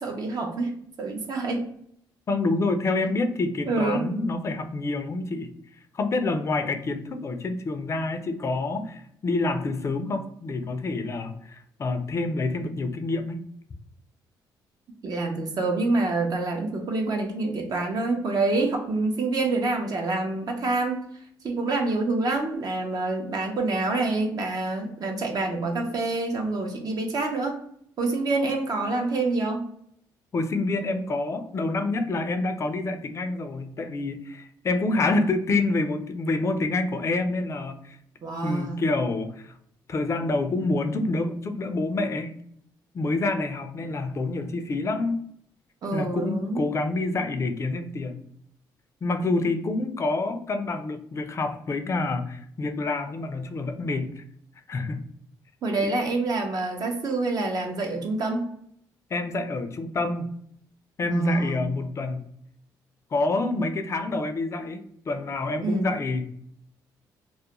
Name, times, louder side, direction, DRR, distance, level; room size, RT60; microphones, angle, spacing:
voice 1, 0.0-0.7 1.0-1.6 3.7-4.1 15.0-21.0 21.4-27.6 28.0-29.6 38.2-38.8 45.8-46.6 55.6-58.5 61.1-61.7 65.6-65.9, right 2 dB, 50° right, 2 dB, 0.6 m, -27 dB
voice 2, 2.3-5.5 5.9-13.4 30.3-38.0 38.4-39.5 39.9-42.3 42.9-45.2 45.9-48.2 49.0-54.2 54.7-55.1 55.8-55.9 59.1-60.3 61.0-62.3 63.1-66.4, left 2 dB, 35° left, 7 dB, 0.4 m, -27 dB
2.3 x 2.1 x 2.8 m, 0.68 s
cardioid pair, 85°, 8 cm